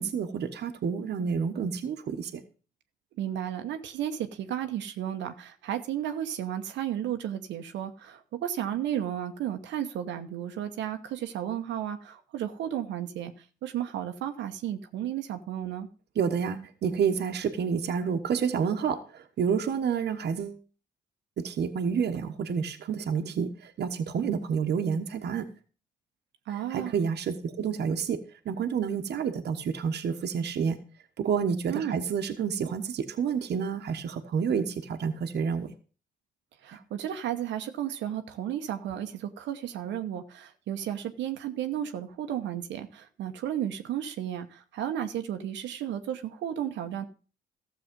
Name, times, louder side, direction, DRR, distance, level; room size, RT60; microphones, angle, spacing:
voice 1, 0.0-2.4 16.1-20.6 21.4-25.5 26.5-30.8 31.2-35.7, right 6 dB, 65° right, 4 dB, 1.2 m, -29 dB
voice 2, 3.2-15.9 26.5-26.9 31.7-32.0 36.6-47.1, right 10 dB, 80° right, 6 dB, 1.0 m, -33 dB
13.5 x 7.0 x 5.2 m, 0.37 s
supercardioid pair, 65°, 18 cm